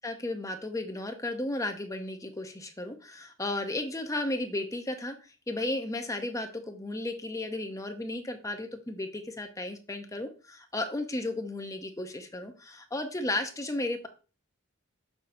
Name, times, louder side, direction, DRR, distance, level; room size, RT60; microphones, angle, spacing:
voice 1, 0.0-5.2 5.5-14.1, left 2 dB, 15° left, 6 dB, 0.7 m, -34 dB
7.0 x 5.8 x 2.6 m, 0.35 s
head